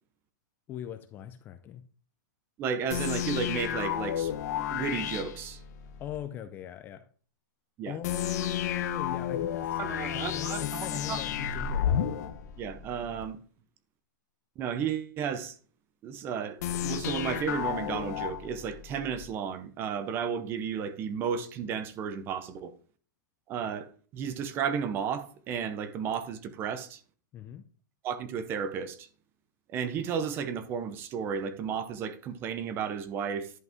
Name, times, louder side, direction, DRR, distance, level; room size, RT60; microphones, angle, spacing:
voice 1, 0.7-1.8 6.0-7.1 7.9-9.8 10.1-12.1 27.3-27.7, left 11 dB, 20° left, 0.4 m, -40 dB
voice 2, 2.6-4.3 4.7-5.6 7.8-8.0 9.8-11.2 12.6-13.4 14.6-15.5 16.0-22.7 23.5-27.0 28.0-29.1 29.7-33.5, right 7 dB, 20° right, 0.7 m, -33 dB
sound 1, 2.9-6.2 8.0-13.3 16.6-19.3, left 9 dB, 55° left, 1.0 m, -32 dB
11.0 x 5.3 x 3.5 m
supercardioid pair, 165°, 11 cm